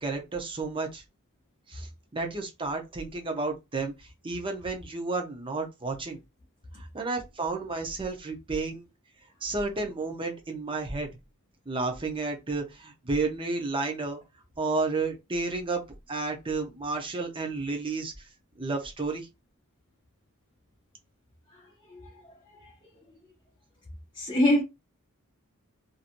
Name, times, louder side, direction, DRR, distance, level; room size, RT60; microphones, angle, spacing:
voice 1, 0.0-1.0 1.7-6.2 6.7-8.9 9.4-11.1 11.7-14.2 14.6-18.1 18.6-19.3, right 3 dB, 25° right, 0.7 m, -32 dB
voice 2, 21.5-22.7 24.1-24.6, left 1 dB, 20° left, 0.7 m, -27 dB
2.9 x 2.7 x 2.5 m
head